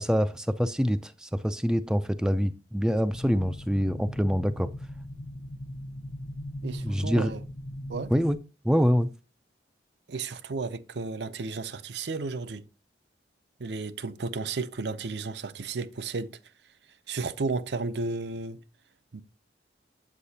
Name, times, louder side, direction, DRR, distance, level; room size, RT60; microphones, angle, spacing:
voice 1, 0.0-4.7 6.8-7.3 8.1-8.4 8.6-9.1, equal, 5° right, 0.3 m, -25 dB
sound 1, 3.1-8.3, left 1 dB, 60° left, 0.7 m, -39 dB
voice 2, 6.6-7.4 7.9-8.1 10.1-12.7 13.6-16.4 17.1-18.6 19.1-19.2, right 3 dB, 70° right, 0.6 m, -33 dB
8.3 x 7.8 x 2.8 m
head